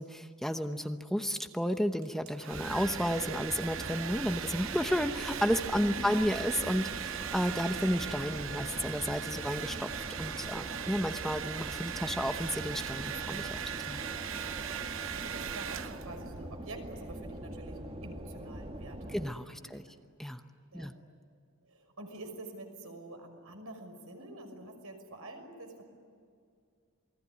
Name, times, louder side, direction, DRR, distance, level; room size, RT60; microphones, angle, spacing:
voice 1, 0.0-9.9 10.2-14.0 19.1-19.8 20.2-20.4 20.7-20.9, equal, ahead, 7 dB, 0.9 m, -32 dB
Domestic sounds home sounds, 2.0-16.3, right 9 dB, 65° right, 0.9 m, -39 dB
sound 1, 2.5-19.3, right 1 dB, 25° right, 1.6 m, -43 dB
voice 2, 14.3-19.8 20.7-21.0 21.6-25.8, right 1 dB, 80° right, 4 dB, 5.9 m, -48 dB
28.5 x 20.5 x 9.6 m, 2.2 s
head